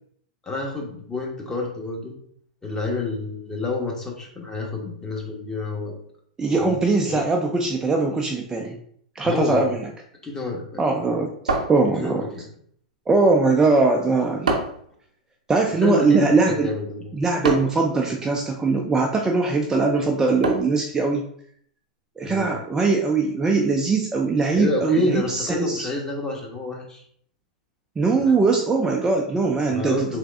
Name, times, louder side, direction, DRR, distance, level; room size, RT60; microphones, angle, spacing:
voice 1, 0.4-2.1 2.6-6.0 6.6-6.8 7.1-7.3 9.2-9.7 10.2-10.8 12.0-12.4 15.8-17.1 22.2-22.5 24.5-27.0 28.2-28.4 29.7-30.2, left 2 dB, 15° left, 0 dB, 1.0 m, -28 dB
voice 2, 6.4-8.8 9.2-9.8 10.8-11.3 11.7-12.3 13.1-14.6 15.5-16.7 17.1-21.3 22.2-25.9 28.0-30.0, right 3 dB, 15° right, 1 dB, 0.4 m, -21 dB
sound 1, 11.5-12.4 14.5-14.9 17.4-17.9 20.4-20.9, right 3 dB, 80° right, 0.7 m, -25 dB
3.4 x 3.2 x 2.4 m, 0.63 s
hypercardioid pair, 105°, 4 cm